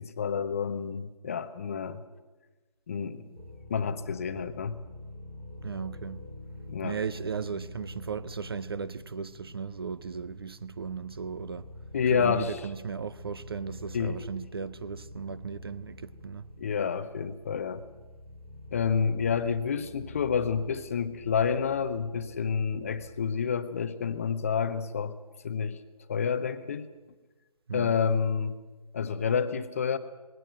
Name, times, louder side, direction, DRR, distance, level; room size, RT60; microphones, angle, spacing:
voice 1, 0.0-2.0 2.9-3.3 3.7-4.8 6.7-7.0 11.9-12.6 13.9-14.2 16.6-17.8 18.7-25.1 25.4-25.8 26.1-26.9 27.7-28.6 28.9-30.0, left 6 dB, 20° left, 0.7 m, -29 dB
sound 1, 3.4-23.1, left 1 dB, 90° right, 5.3 m, -46 dB
voice 2, 5.6-6.2 6.8-11.7 12.1-16.5 27.7-28.0, right 6 dB, 40° right, 0.6 m, -36 dB
20.0 x 17.0 x 8.0 m
figure-of-eight pair, 155°, 20 cm